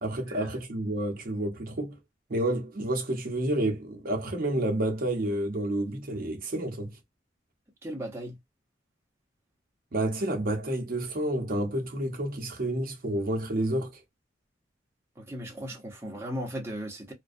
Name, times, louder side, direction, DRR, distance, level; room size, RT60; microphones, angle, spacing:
voice 1, 0.0-2.0 2.3-7.0 9.9-14.0, right 1 dB, 50° right, 0.7 m, -29 dB
voice 2, 7.8-8.4 15.2-17.1, equal, 15° right, 0.7 m, -37 dB
2.4 x 2.1 x 2.5 m
head